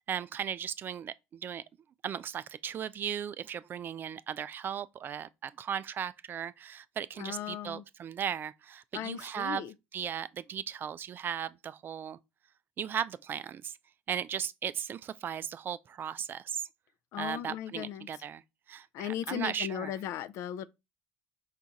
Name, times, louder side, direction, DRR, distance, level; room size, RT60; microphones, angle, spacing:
voice 1, 0.1-1.6 2.0-9.6 9.9-12.2 12.8-13.8 14.1-16.6 17.2-18.4 18.7-20.0, right 8 dB, 40° right, 0.3 m, -37 dB
voice 2, 7.2-7.8 8.9-9.7 17.1-18.1 18.9-20.7, left 11 dB, 60° left, 0.4 m, -37 dB
4.4 x 2.4 x 4.0 m
hypercardioid pair, 85°, 6 cm